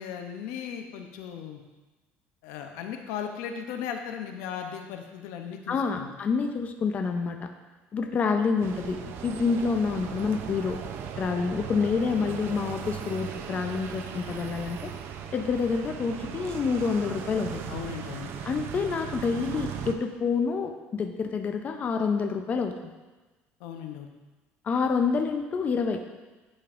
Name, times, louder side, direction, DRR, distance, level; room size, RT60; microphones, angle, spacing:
voice 1, 0.0-1.6 2.4-6.1 17.7-18.3 23.6-24.1, left 8 dB, 85° left, 5 dB, 0.7 m, -37 dB
voice 2, 5.7-7.5 7.9-10.8 11.2-14.9 15.3-17.6 18.4-22.7 24.6-26.0, left 5 dB, 35° left, 5 dB, 0.5 m, -27 dB
sound 1, 8.6-19.9, right 8 dB, 60° right, 0.5 m, -38 dB
9.7 x 5.1 x 2.5 m, 1.2 s
cardioid pair, 125°, 4 cm